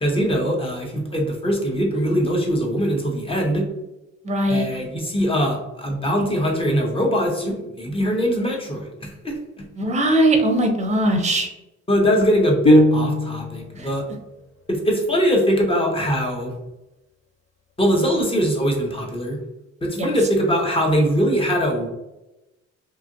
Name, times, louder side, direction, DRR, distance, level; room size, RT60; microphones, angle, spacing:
voice 1, 0.0-3.7 4.5-9.6 11.9-14.0 14.7-16.5 17.8-19.4 19.8-21.9, equal, 20° left, -1 dB, 0.8 m, -22 dB
voice 2, 4.2-4.6 9.8-11.5 13.8-13.9 19.9-20.1, right 1 dB, 25° right, 3 dB, 0.6 m, -20 dB
sound 1, 12.6-13.7, left 1 dB, 45° left, 0.5 m, -17 dB
2.9 x 2.4 x 2.5 m, 0.96 s
cardioid pair, 90°, 30 cm